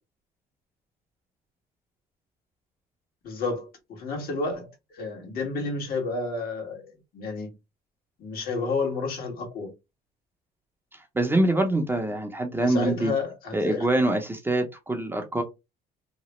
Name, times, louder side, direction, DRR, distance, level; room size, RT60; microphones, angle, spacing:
voice 1, 3.2-7.5 8.2-9.7 12.6-14.1, left 3 dB, 65° left, 1.3 m, -31 dB
voice 2, 11.1-13.1 13.5-15.4, right 1 dB, 15° right, 0.6 m, -24 dB
2.9 x 2.0 x 3.0 m
cardioid pair, 110°, 17 cm